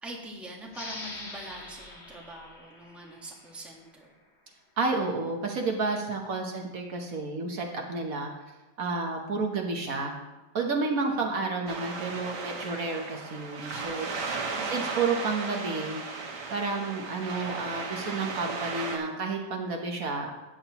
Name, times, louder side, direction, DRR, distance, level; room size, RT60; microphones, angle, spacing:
voice 1, 0.0-4.1 6.5-6.7 11.1-11.2 14.5-14.9, right 1 dB, ahead, -1 dB, 1.2 m, -44 dB
sound 1, 0.7-4.0, left 2 dB, 40° left, 1.8 m, -44 dB
voice 2, 4.8-8.3 8.8-10.2 10.5-14.3 14.6-16.0 16.5-20.3, right 3 dB, 60° right, 2 dB, 1.4 m, -31 dB
sound 2, 11.7-19.0, right 4 dB, 85° right, 1.8 m, -35 dB
13.5 x 8.6 x 3.0 m, 1.1 s
omnidirectional pair, 1.8 m